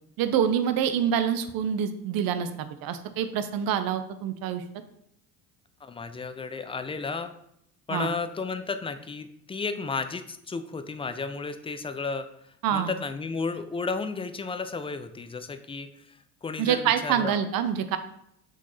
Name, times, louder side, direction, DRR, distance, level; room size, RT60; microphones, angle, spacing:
voice 1, 0.2-4.6 7.9-8.1 12.6-12.9 16.6-18.0, right 9 dB, 50° right, 10 dB, 0.7 m, -26 dB
voice 2, 5.8-7.3 7.9-17.4, left 4 dB, 15° left, 10 dB, 0.5 m, -33 dB
6.0 x 4.0 x 4.1 m, 0.74 s
hypercardioid pair, 55°, 45 cm